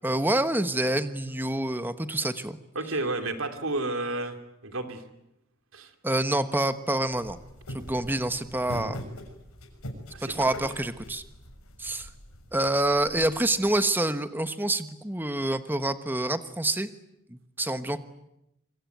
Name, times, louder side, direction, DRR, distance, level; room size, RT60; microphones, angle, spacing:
voice 1, 0.0-2.6 6.0-7.4 7.7-9.1 10.2-11.2 11.8-12.1 12.5-16.9 17.3-18.0, right 1 dB, 10° right, 10 dB, 1.2 m, -27 dB
voice 2, 2.7-4.4 4.6-5.0 5.7-5.9 10.1-10.4, right 2 dB, 70° right, 6 dB, 3.0 m, -31 dB
sound 1, 7.1-13.8, equal, 80° left, 6.4 m, -42 dB
26.5 x 24.0 x 9.5 m, 0.87 s
head